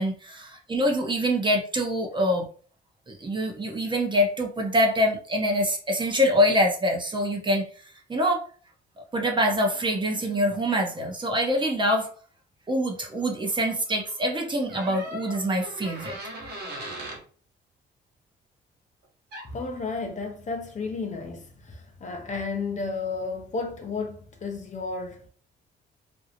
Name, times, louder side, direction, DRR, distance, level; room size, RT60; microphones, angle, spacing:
voice 1, 0.0-2.4 3.1-7.7 8.1-8.4 9.1-12.1 12.7-16.2, equal, 25° right, 0.7 m, -25 dB
sound 1, 14.7-17.2 19.3-19.5, right 1 dB, 55° right, 1.0 m, -38 dB
voice 2, 19.5-25.2, left 4 dB, 40° left, 0.6 m, -32 dB
2.5 x 2.0 x 2.8 m
cardioid pair, 90°, 20 cm